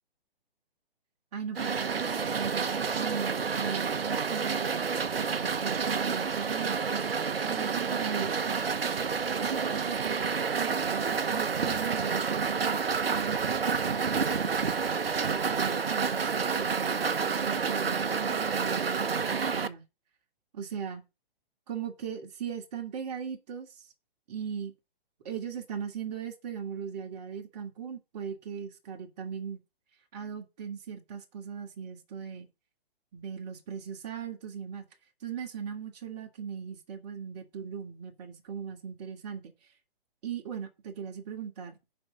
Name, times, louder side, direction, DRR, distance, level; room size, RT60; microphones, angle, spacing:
voice 1, 1.3-4.7 5.1-7.0 7.4-8.4 9.4-10.2 10.5-14.4 15.2-17.1 17.4-19.8 20.5-21.0 21.7-23.7 24.3-24.7 25.2-29.6 30.1-32.5 33.1-34.8 35.2-39.5 40.2-41.9, right 7 dB, 45° right, 2.6 m, -38 dB
sound 1, 1.5-19.7, right 5 dB, 80° right, 1.0 m, -29 dB
7.5 x 5.6 x 7.3 m
figure-of-eight pair, 130°, 29 cm